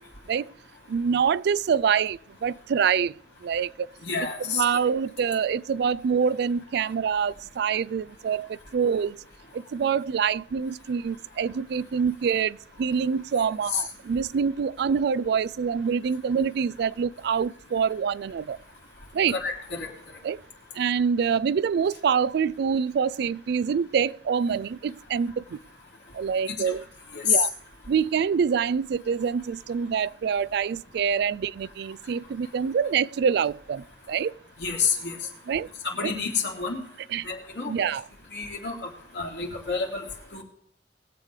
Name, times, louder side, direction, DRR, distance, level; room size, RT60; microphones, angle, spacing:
voice 1, 0.9-3.1 3.4-3.7 4.5-9.2 9.5-18.6 19.1-19.4 20.2-20.4 20.8-25.6 26.1-26.8 27.2-27.5 27.9-34.3 35.5-35.7 36.0-36.1 37.1-37.2 37.7-38.0, right 6 dB, 65° right, 0.3 m, -26 dB
voice 2, 4.0-4.6 13.7-13.8 19.3-19.9 27.2-27.3 34.6-35.1 35.8-36.8 37.2-37.8 38.3-38.8 39.2-40.0 40.3-40.4, left 5 dB, 70° left, 3.5 m, -29 dB
21.0 x 8.1 x 3.3 m
head